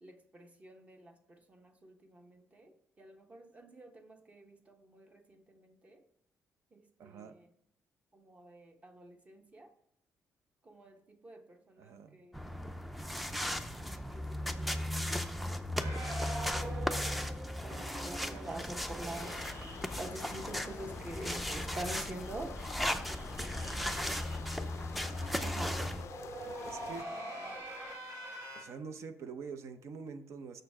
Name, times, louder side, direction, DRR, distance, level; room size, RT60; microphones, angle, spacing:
voice 1, 0.0-6.0 6.7-7.3 8.1-9.7 10.6-12.5 14.1-16.7 17.6-19.3 20.0-22.5 25.4-25.8, right 1 dB, 25° right, 5 dB, 1.0 m, -47 dB
voice 2, 7.0-7.4 11.8-12.2 23.6-24.2 26.7-27.1 28.5-30.6, right 5 dB, 60° right, 9 dB, 0.7 m, -46 dB
sound 1, 12.3-26.0, left 1 dB, ahead, 0.4 m, -37 dB
sound 2, 15.8-20.9 21.2-21.3 21.5-21.6 21.9-28.6, right 1 dB, 85° right, 3.6 m, -46 dB
sound 3, 19.1-27.0, left 10 dB, 60° left, 0.3 m, -48 dB
6.7 x 6.4 x 4.8 m, 0.72 s
cardioid pair, 155°, 6 cm